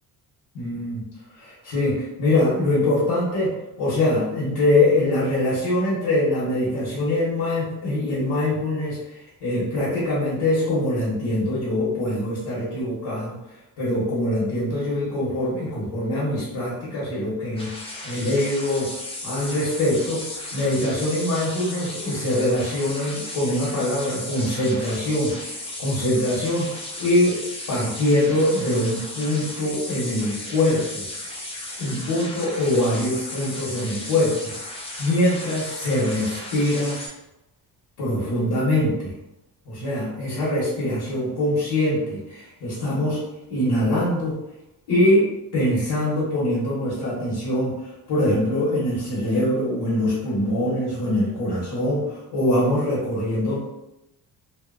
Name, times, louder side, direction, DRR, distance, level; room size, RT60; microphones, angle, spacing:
voice 1, 0.5-1.0 1.4-18.9 19.2-20.2 20.5-26.7 27.0-27.4 27.7-31.1 31.8-34.5 35.0-37.0 38.0-39.1 39.6-43.2 43.5-44.4 44.9-53.6, left 1 dB, 90° left, -8 dB, 1.0 m, -23 dB
sound 1, 17.6-37.1, left 1 dB, 15° left, 0.4 m, -35 dB
2.7 x 2.2 x 2.4 m, 0.89 s
cardioid pair, 165°, 39 cm